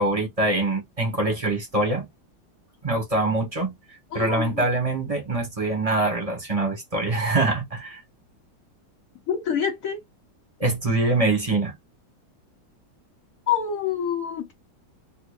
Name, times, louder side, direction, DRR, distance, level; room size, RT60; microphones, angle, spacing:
voice 1, 0.0-2.1 2.8-3.7 4.1-8.0 10.6-11.7, right 2 dB, 20° right, 1.0 m, -24 dB
voice 2, 4.1-4.6 9.3-10.0 13.5-14.5, left 8 dB, 55° left, 1.1 m, -26 dB
3.9 x 2.8 x 2.4 m
omnidirectional pair, 2.1 m